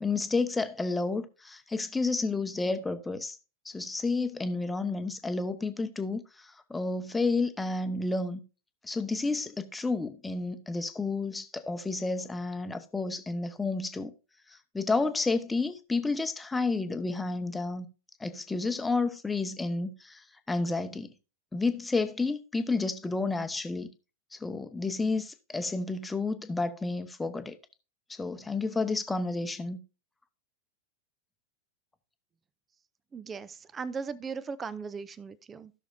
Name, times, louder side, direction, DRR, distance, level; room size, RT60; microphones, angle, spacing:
voice 1, 0.0-3.4 3.6-8.4 8.8-14.1 14.5-17.9 18.2-21.1 21.5-23.9 24.3-27.6 28.1-29.8, left 3 dB, 10° left, 1.0 m, -31 dB
voice 2, 33.1-35.7, right 5 dB, 20° right, 0.6 m, -38 dB
16.0 x 6.3 x 2.6 m
figure-of-eight pair, 90°, 0 cm